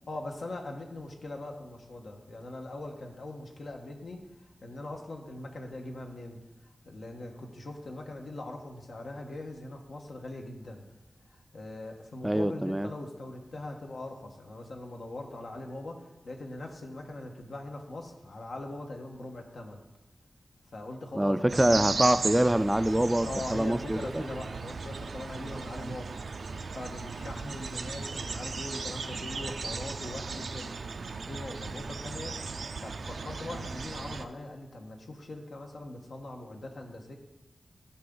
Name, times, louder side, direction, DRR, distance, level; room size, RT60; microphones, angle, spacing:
voice 1, 0.1-6.4 6.8-10.8 11.3-19.8 20.7-21.8 23.2-26.1 26.7-30.8 31.3-32.4 32.8-37.1, left 2 dB, 85° left, 2 dB, 1.4 m, -41 dB
voice 2, 12.2-12.9 21.2-24.2, right 1 dB, 10° right, 12 dB, 0.3 m, -25 dB
sound 1, 21.5-34.3, right 4 dB, 85° right, 0.5 m, -36 dB
14.5 x 5.9 x 3.9 m, 1.0 s
wide cardioid pair, 105°, 0 cm